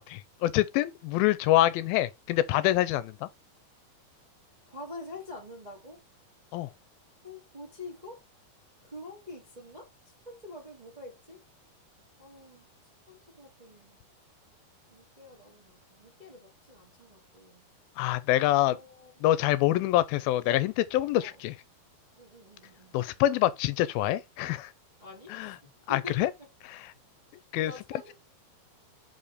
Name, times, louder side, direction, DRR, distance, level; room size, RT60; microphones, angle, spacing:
voice 1, 0.0-3.3 6.5-6.7 18.0-18.8 19.2-21.6 22.9-24.7 25.3-25.6 25.9-26.3 26.7-26.9 27.5-27.7, left 14 dB, 85° left, 2.3 m, -26 dB
voice 2, 4.7-6.0 7.2-8.2 8.8-9.9 10.2-11.4 12.2-12.7 13.1-14.0 14.9-17.6 18.3-19.3 21.2-21.4 22.2-23.0 25.0-26.3 27.6-28.1, left 2 dB, 20° right, 1.1 m, -46 dB
5.5 x 4.2 x 4.9 m
omnidirectional pair, 4.3 m